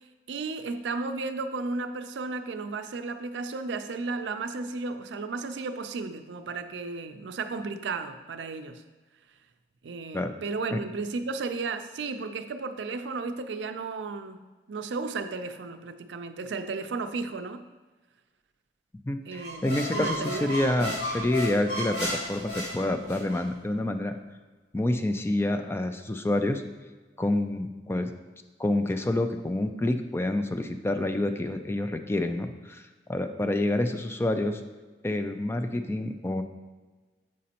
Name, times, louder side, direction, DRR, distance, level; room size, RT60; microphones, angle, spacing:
voice 1, 0.3-8.8 9.8-14.4 14.7-17.6 19.3-19.6 19.9-20.5 20.8-20.9, right 4 dB, 85° right, 9 dB, 0.4 m, -34 dB
voice 2, 19.0-24.1 24.7-26.6 27.2-28.1 28.6-34.6 35.0-36.4, left 1 dB, 15° left, 7 dB, 0.3 m, -28 dB
sound 1, 19.3-23.4, equal, 75° left, 2.0 m, -34 dB
7.5 x 5.1 x 2.9 m, 1.3 s
head